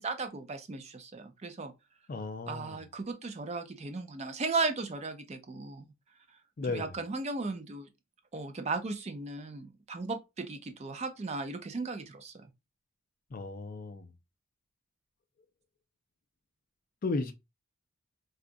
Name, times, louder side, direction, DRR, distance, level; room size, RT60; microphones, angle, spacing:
voice 1, 0.0-1.7 2.5-5.9 6.7-7.9 8.3-12.5, right 3 dB, 30° right, 0.4 m, -36 dB
voice 2, 2.1-2.7 6.6-6.9 13.3-14.1 17.0-17.3, left 3 dB, 40° left, 0.4 m, -34 dB
3.8 x 2.3 x 2.5 m
head